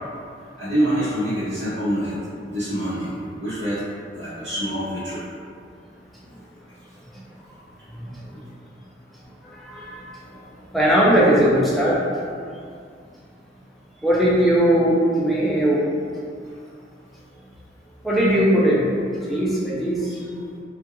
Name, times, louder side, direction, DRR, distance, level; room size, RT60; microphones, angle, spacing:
voice 1, 0.6-2.2 2.5-3.9 4.1-5.2 11.1-11.2, equal, 75° right, -14 dB, 0.9 m, -26 dB
voice 2, 9.7-10.0 10.7-12.0 14.0-15.8 18.0-18.8 19.3-20.1, right 1 dB, ahead, -7 dB, 0.4 m, -18 dB
2.3 x 2.2 x 2.8 m, 2.3 s
head